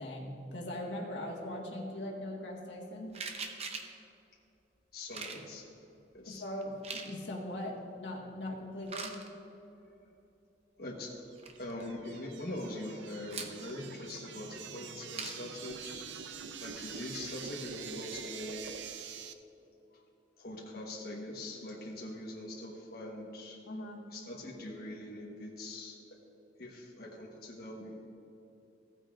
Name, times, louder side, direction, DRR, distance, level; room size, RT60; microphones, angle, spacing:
voice 1, 0.0-3.1 6.2-9.2 23.7-24.0, left 1 dB, 90° left, -2 dB, 1.6 m, -40 dB
sound 1, 3.1-4.0 5.1-5.4 6.6-7.1 8.8-9.3 11.1-11.2 11.4-11.8 13.3-13.7 15.1-15.4, right 5 dB, 35° right, 0.8 m, -41 dB
voice 2, 4.9-5.7 6.1-6.4 10.8-11.1 11.6-16.1 16.6-18.7 19.9-20.0 20.4-23.6 24.1-26.0 26.6-28.0, left 1 dB, 60° left, -3 dB, 1.2 m, -42 dB
sound 2, 11.3-19.3, right 7 dB, 85° right, 0.5 m, -45 dB
15.5 x 9.2 x 2.5 m, 2.9 s
head